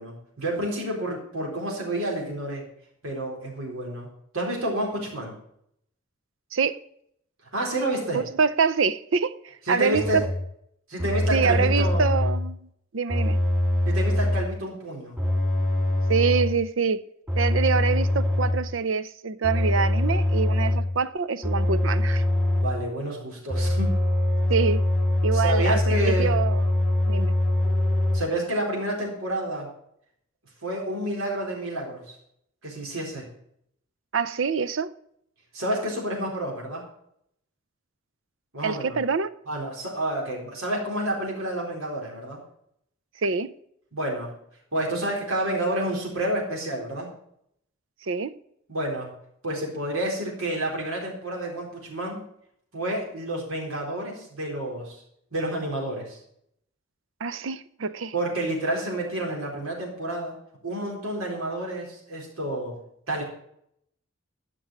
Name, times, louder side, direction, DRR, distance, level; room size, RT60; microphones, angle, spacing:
voice 1, 0.0-2.6 3.0-4.1 4.3-5.3 7.5-8.2 9.7-10.2 10.9-12.0 13.9-15.2 22.6-23.9 25.3-26.3 28.1-29.7 30.6-32.0 32.6-33.2 35.5-36.8 38.5-39.0 39.5-42.4 43.9-44.3 44.7-47.1 48.7-49.1 49.4-52.2 52.7-55.0 55.3-56.2 58.1-60.4 60.6-62.8 63.1-63.2, right 1 dB, 85° right, 4.2 m, -29 dB
voice 2, 8.1-10.2 11.3-12.6 12.9-13.4 16.1-17.0 17.4-22.2 24.5-24.8 25.2-26.7 27.1-27.3 34.1-34.9 38.6-39.3 43.2-43.5 48.0-48.3 57.2-58.1, right 5 dB, 65° right, 0.6 m, -25 dB
sound 1, 9.9-10.5 11.0-12.5 13.1-14.6 15.2-16.6 17.3-18.7 19.4-21.0 21.4-22.8 23.5-28.2, left 1 dB, 10° right, 2.3 m, -23 dB
12.0 x 6.2 x 6.4 m
head